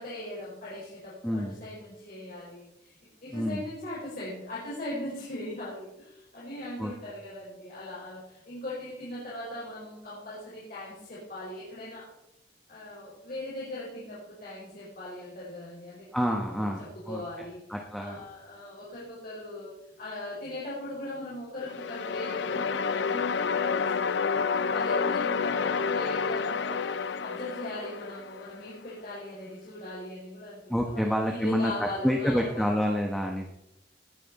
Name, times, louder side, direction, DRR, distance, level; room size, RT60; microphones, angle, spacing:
voice 1, 0.0-2.9 3.2-12.1 12.7-17.6 18.0-24.3 24.7-32.7, left 1 dB, 55° left, -8 dB, 5.2 m, -39 dB
voice 2, 1.2-1.6 3.3-3.6 6.8-6.9 16.1-18.3 30.7-33.5, equal, ahead, 1 dB, 1.2 m, -28 dB
sound 1, 21.6-28.6, left 5 dB, 75° left, 0.5 m, -29 dB
18.5 x 9.9 x 4.2 m, 0.86 s
head